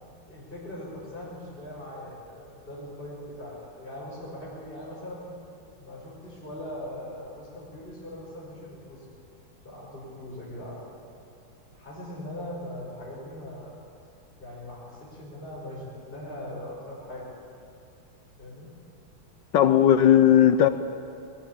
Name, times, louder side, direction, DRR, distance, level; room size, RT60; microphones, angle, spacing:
voice 1, 0.3-5.3 5.8-9.0 9.6-10.8 11.7-13.7 14.4-17.3 18.4-18.7, left 1 dB, 25° left, -7 dB, 5.8 m, -40 dB
voice 2, 19.5-20.7, left 10 dB, 70° left, 11 dB, 1.3 m, -17 dB
20.5 x 16.5 x 8.8 m, 2.6 s
omnidirectional pair, 2.3 m